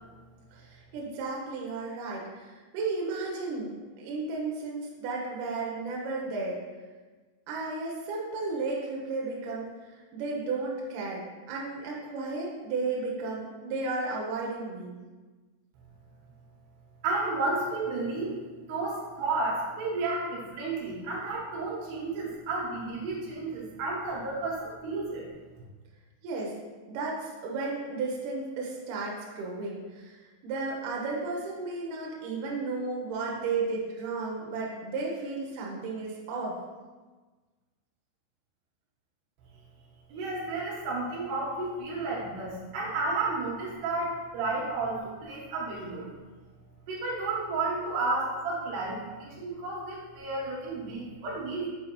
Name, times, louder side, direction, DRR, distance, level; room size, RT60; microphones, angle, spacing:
voice 1, 0.7-6.6 7.5-14.9 26.2-26.5 26.9-30.2 30.4-36.5, right 3 dB, 85° right, -3 dB, 1.8 m, -33 dB
voice 2, 17.0-18.4 18.7-25.3 40.1-46.1 46.9-51.7, right 3 dB, 70° right, -5 dB, 3.1 m, -32 dB
7.4 x 4.6 x 3.1 m, 1.3 s
omnidirectional pair, 5.5 m